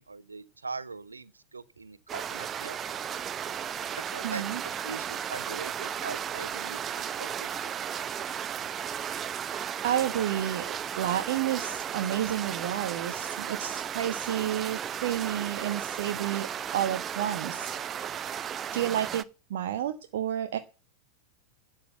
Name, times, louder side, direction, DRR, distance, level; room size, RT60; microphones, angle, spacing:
voice 1, 0.0-2.8 4.0-7.7, right 4 dB, 75° right, 0.9 m, -42 dB
sound 1, 2.1-19.2, right 8 dB, 25° right, 0.7 m, -35 dB
voice 2, 4.2-4.6 9.8-17.7 18.7-20.6, right 11 dB, 55° right, 1.1 m, -31 dB
12.0 x 7.7 x 7.9 m
figure-of-eight pair, 90°, 0 cm